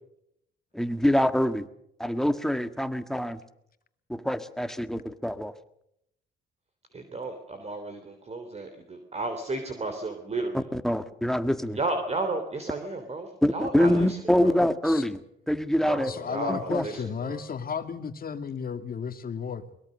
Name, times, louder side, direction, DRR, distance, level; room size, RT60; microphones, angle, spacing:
voice 1, 0.7-1.7 2.0-3.4 4.1-5.5 10.5-11.8 13.4-15.2 15.5-16.1 16.5-16.8, left 1 dB, ahead, 10 dB, 1.7 m, -25 dB
voice 2, 6.9-10.7 11.7-14.5 15.9-17.4, right 2 dB, 35° right, 6 dB, 3.2 m, -33 dB
voice 3, 16.0-19.6, left 6 dB, 50° left, 8 dB, 2.3 m, -34 dB
23.0 x 21.5 x 6.5 m, 0.77 s
cardioid pair, 90°, 20 cm